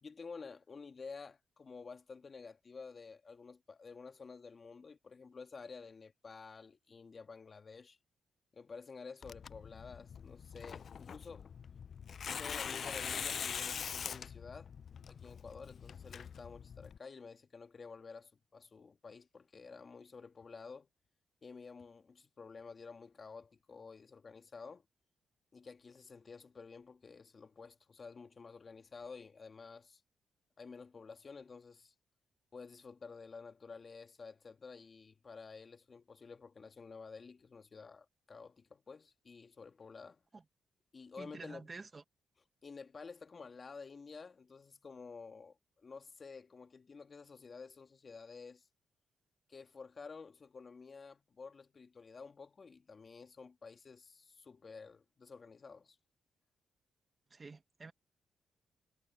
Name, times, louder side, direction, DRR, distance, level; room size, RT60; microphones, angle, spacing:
voice 1, 0.0-8.0 8.5-11.5 12.3-14.7 15.1-20.9 21.4-24.9 25.5-30.0 30.6-31.9 32.5-40.2 40.9-41.7 42.6-48.7 49.5-56.0, left 4 dB, 40° left, 1.8 m, -51 dB
Tearing, 9.2-17.0, left 7 dB, 55° left, 0.4 m, -43 dB
voice 2, 41.2-42.0 57.3-57.9, right 4 dB, 35° right, 1.0 m, -49 dB
cardioid pair, 85°, 0 cm